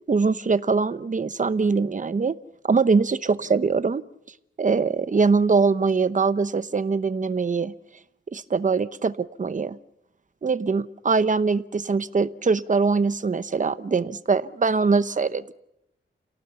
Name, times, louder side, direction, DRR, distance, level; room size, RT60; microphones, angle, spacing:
voice 1, 0.1-2.3 2.6-4.0 4.6-7.7 8.3-9.8 10.4-15.5, right 4 dB, 40° right, 13 dB, 0.9 m, -22 dB
28.5 x 18.0 x 6.9 m, 0.90 s
wide cardioid pair, 100°, 21 cm